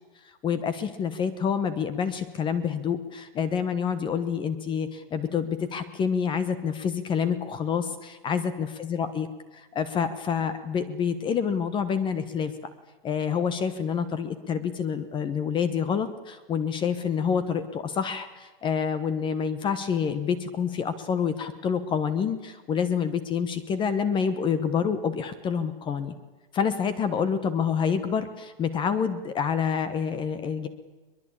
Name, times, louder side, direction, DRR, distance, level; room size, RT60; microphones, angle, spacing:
voice 1, 0.4-9.3 9.5-12.5 13.0-26.1 26.5-30.7, left 7 dB, 15° left, 13 dB, 1.2 m, -27 dB
22.5 x 21.5 x 8.7 m, 1.2 s
hypercardioid pair, 150°, 30 cm